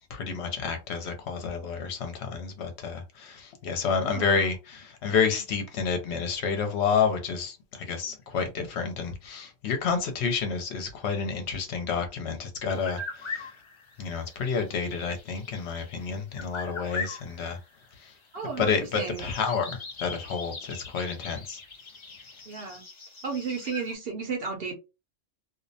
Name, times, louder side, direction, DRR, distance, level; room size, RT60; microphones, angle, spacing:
voice 1, 0.1-13.5 14.0-17.6 18.0-18.1 18.6-21.6, left 5 dB, 65° left, 0.8 m, -29 dB
voice 2, 4.0-4.5 8.0-8.2 18.3-19.3 22.5-22.8 23.2-24.7, right 4 dB, 55° right, 0.8 m, -34 dB
sound 1, 12.7-23.9, left 4 dB, 50° left, 0.3 m, -41 dB
2.5 x 2.0 x 2.6 m
omnidirectional pair, 1.3 m